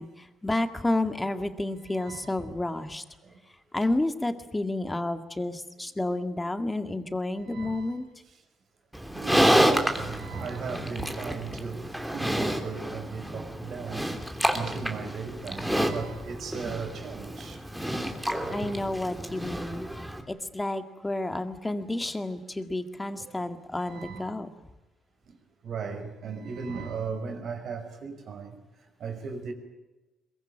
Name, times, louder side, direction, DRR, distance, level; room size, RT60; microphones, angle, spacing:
voice 1, 0.0-3.0 3.7-8.1 18.5-24.5, left 2 dB, 15° left, 2.0 m, -30 dB
voice 2, 1.9-2.3 7.5-7.9 9.1-11.8 12.1-14.0 14.5-17.6 18.4-18.7 23.9-24.2 25.6-28.5 29.0-29.5, right 5 dB, 60° right, 5.5 m, -36 dB
Livestock farm animals working animals, 8.9-20.2, equal, 5° right, 3.0 m, -29 dB
22.5 x 21.5 x 8.9 m
cardioid pair, 105°, 0 cm